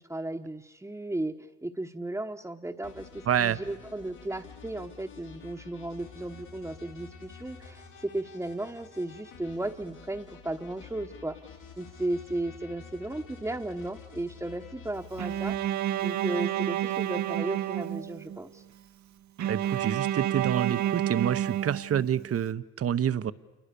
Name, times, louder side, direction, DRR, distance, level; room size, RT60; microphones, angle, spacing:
voice 1, 0.0-1.3 1.6-11.4 11.8-15.6 16.0-18.6, right 1 dB, 10° right, 0 dB, 1.2 m, -35 dB
sound 1, 2.8-15.5, left 5 dB, 90° left, 6.0 m, -49 dB
voice 2, 3.3-3.6 19.5-23.3, right 9 dB, 50° right, 15 dB, 1.0 m, -28 dB
Bowed string instrument, 15.2-18.4 19.4-22.3, right 12 dB, 70° right, 1.2 m, -30 dB
28.0 x 22.0 x 6.9 m, 1.2 s
cardioid pair, 90°, 30 cm